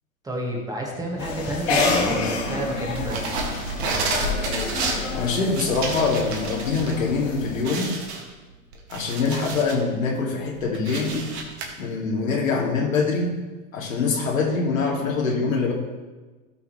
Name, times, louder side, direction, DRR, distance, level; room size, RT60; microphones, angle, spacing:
voice 1, 0.2-3.4, right 1 dB, 10° right, -1 dB, 1.6 m, -30 dB
sound 1, 1.2-7.6, left 3 dB, 50° left, 2.6 m, -28 dB
sound 2, 3.0-6.9 7.3-7.4 7.6-9.8 10.3-11.7, right 2 dB, 50° right, 1.9 m, -30 dB
voice 2, 5.1-7.9 8.9-11.3 11.8-13.3 13.7-15.7, left 4 dB, 65° left, -1 dB, 2.3 m, -24 dB
17.0 x 5.8 x 3.1 m, 1.3 s
figure-of-eight pair, 100°, 42 cm